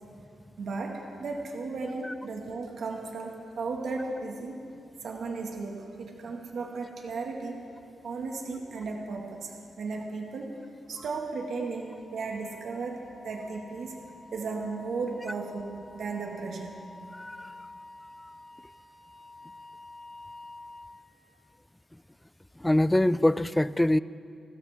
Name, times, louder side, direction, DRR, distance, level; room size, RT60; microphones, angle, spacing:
voice 1, 0.6-4.7 5.0-7.7 8.0-10.6 10.9-13.9 14.3-16.8, right 4 dB, 70° right, 1 dB, 1.8 m, -35 dB
Wind instrument woodwind instrument, 11.5-21.0, left 2 dB, 35° left, 2.9 m, -49 dB
voice 2, 17.2-17.5 22.6-24.0, left 1 dB, 10° left, 17 dB, 0.4 m, -24 dB
29.5 x 13.0 x 3.6 m, 2.5 s
cardioid pair, 85°, 0 cm